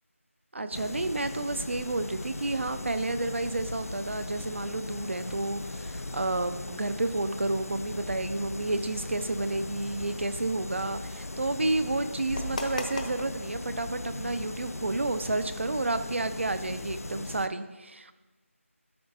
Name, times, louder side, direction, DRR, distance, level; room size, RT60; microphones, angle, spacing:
voice 1, 0.5-18.1, right 2 dB, 55° right, 11 dB, 0.5 m, -31 dB
sound 1, 0.7-17.5, left 2 dB, 85° left, 0.4 m, -38 dB
sound 2, 9.1-15.2, left 2 dB, 35° left, 0.6 m, -42 dB
12.0 x 5.1 x 2.6 m, 1.2 s
figure-of-eight pair, 165°, 8 cm